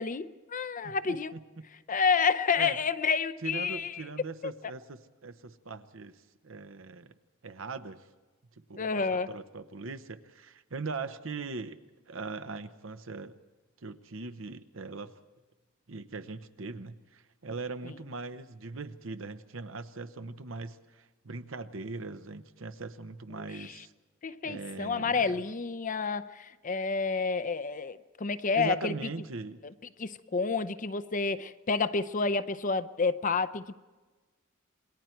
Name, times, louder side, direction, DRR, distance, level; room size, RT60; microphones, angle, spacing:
voice 1, 0.0-1.3 1.9-4.0 4.4-4.5 8.8-9.4 23.6-23.7 24.2-28.9 29.6-29.7 30.0-33.8, left 5 dB, 40° left, 0.7 m, -29 dB
voice 2, 0.8-1.7 2.6-2.8 3.4-7.1 7.4-8.0 8.7-11.8 12.1-13.4 13.8-15.1 15.9-23.9 24.4-25.4 28.5-29.6, right 3 dB, 75° right, 1.0 m, -40 dB
28.0 x 21.5 x 4.6 m
head